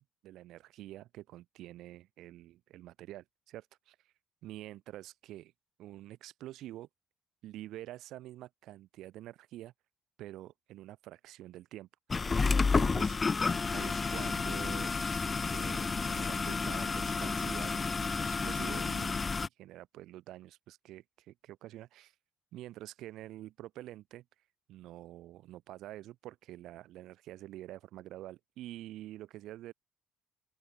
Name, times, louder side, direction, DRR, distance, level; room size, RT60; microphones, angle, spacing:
voice 1, 0.0-4.0 4.4-5.5 5.8-6.9 7.4-9.7 10.2-13.2 13.7-22.1 22.5-24.2 24.7-29.7, right 14 dB, 75° right, 5.6 m, -47 dB
sound 1, 12.1-19.5, left 4 dB, 25° left, 4.1 m, -31 dB
open air
cardioid pair, 105°, 0 cm